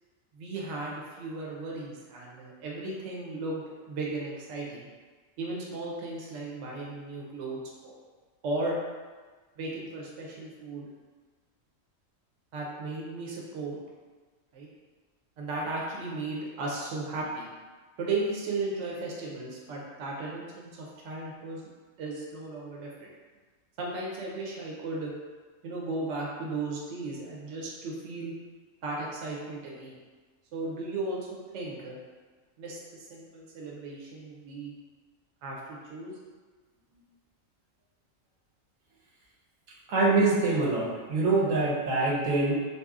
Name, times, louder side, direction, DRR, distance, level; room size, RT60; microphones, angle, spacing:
voice 1, 0.3-4.9 5.4-8.0 8.4-8.8 9.6-10.9 12.5-13.8 14.5-14.7 15.4-17.4 18.0-21.7 22.0-23.1 23.8-25.1 25.6-28.3 28.8-30.0 30.5-32.0 32.6-34.7 35.4-36.1, right 2 dB, 70° right, -3 dB, 0.8 m, -35 dB
voice 2, 39.9-42.5, right 3 dB, 85° right, -4 dB, 1.0 m, -24 dB
2.7 x 2.3 x 2.3 m, 1.4 s
omnidirectional pair, 1.4 m